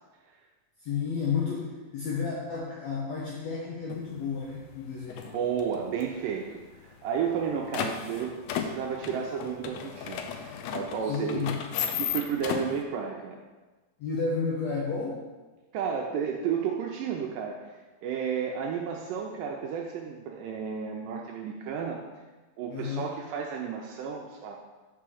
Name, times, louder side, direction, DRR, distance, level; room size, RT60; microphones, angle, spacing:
voice 1, 0.8-5.4 11.0-11.6 14.0-15.2 22.7-23.1, left 5 dB, 70° left, -5 dB, 1.8 m, -32 dB
sound 1, 3.9-4.0 4.5-4.8 5.1-6.0 6.3-6.4 6.6-6.7 7.1-12.8, left 8 dB, 85° left, 1.7 m, -34 dB
voice 2, 5.3-11.5 12.0-13.4 15.7-22.0 22.6-24.6, right 7 dB, 80° right, 0 dB, 2.2 m, -32 dB
5.8 x 4.8 x 6.2 m, 1.2 s
omnidirectional pair, 4.0 m